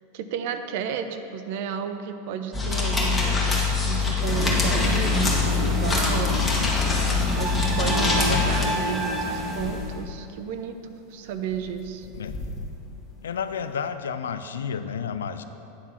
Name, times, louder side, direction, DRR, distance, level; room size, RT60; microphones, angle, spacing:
voice 1, 0.1-6.4 7.3-12.1 13.1-13.3, right 7 dB, 65° right, 8 dB, 0.6 m, -32 dB
sound 1, 2.5-8.7, left 5 dB, 15° left, 1.6 m, -24 dB
sound 2, 3.3-13.9, left 2 dB, 35° left, 1.4 m, -40 dB
sound 3, 4.2-10.0, equal, 15° right, 1.6 m, -28 dB
voice 2, 6.3-6.7 8.0-8.6 12.1-12.4 13.2-15.4, left 7 dB, 85° left, 10 dB, 0.4 m, -31 dB
9.7 x 3.7 x 5.7 m, 2.8 s
hypercardioid pair, 100°, 0 cm